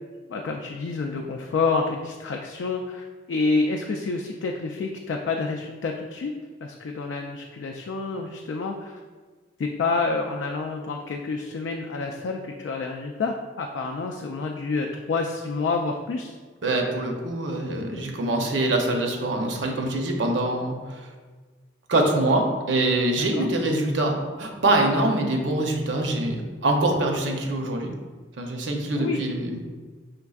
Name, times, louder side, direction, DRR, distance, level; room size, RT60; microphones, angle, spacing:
voice 1, 0.3-6.3 6.6-9.0 9.6-16.4 23.2-23.5 26.0-26.1 28.9-29.3, left 4 dB, 70° left, 2 dB, 0.3 m, -28 dB
voice 2, 16.6-21.1 21.9-27.9 28.4-29.6, right 2 dB, 70° right, 2 dB, 0.6 m, -24 dB
5.2 x 3.4 x 2.3 m, 1.4 s
head